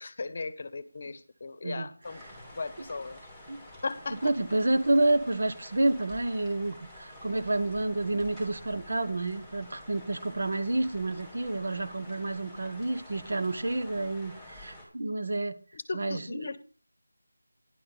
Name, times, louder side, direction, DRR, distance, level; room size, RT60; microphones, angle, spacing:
voice 1, 0.0-2.2 2.6-3.2 3.8-4.2 15.9-16.6, left 3 dB, 40° left, 1.0 m, -37 dB
voice 2, 1.6-2.3 2.8-2.9 3.5-3.6 4.1-15.6 15.9-16.5, right 2 dB, 60° right, 1.3 m, -29 dB
sound 1, 2.0-14.9, left 1 dB, 5° right, 3.3 m, -49 dB
10.5 x 5.8 x 6.8 m
figure-of-eight pair, 170°, 0 cm